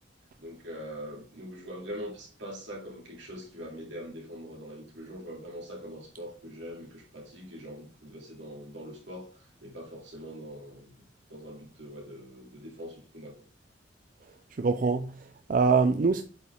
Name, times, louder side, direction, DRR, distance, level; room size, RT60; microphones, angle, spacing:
voice 1, 0.4-13.4, equal, 75° right, 2.7 m, -43 dB
voice 2, 14.6-16.2, right 4 dB, 45° right, 0.4 m, -24 dB
8.1 x 4.6 x 3.5 m
head